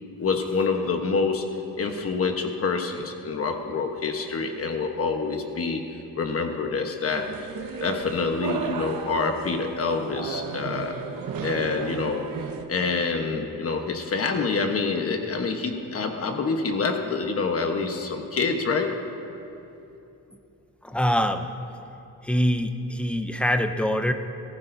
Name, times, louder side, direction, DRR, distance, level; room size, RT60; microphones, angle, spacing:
voice 1, 0.2-1.5 1.8-5.8 6.1-7.5 7.8-11.0 11.4-12.3 12.7-19.0, left 4 dB, 40° left, 4 dB, 1.1 m, -26 dB
sound 1, 7.1-12.6, right 6 dB, 75° right, 1.0 m, -34 dB
voice 2, 20.8-21.5 22.2-24.1, equal, 5° left, 7 dB, 0.5 m, -24 dB
19.5 x 14.5 x 2.7 m, 2.8 s
wide cardioid pair, 150°, 35 cm